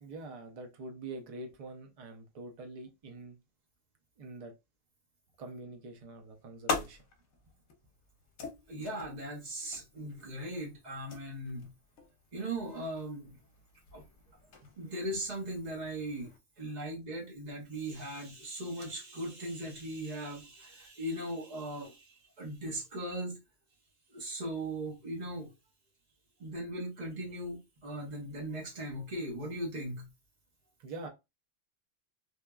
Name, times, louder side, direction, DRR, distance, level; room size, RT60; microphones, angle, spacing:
voice 1, 0.0-3.4 4.2-4.5 5.4-7.0 30.8-31.1, right 2 dB, 75° right, 0.3 m, -45 dB
sound 1, 5.9-16.4, left 3 dB, 70° left, 0.9 m, -44 dB
voice 2, 8.7-11.7 12.3-13.4 13.9-14.0 14.8-23.4 24.1-25.5 26.4-30.1, right 1 dB, 40° right, 0.9 m, -39 dB
2.9 x 2.2 x 2.2 m
omnidirectional pair, 1.3 m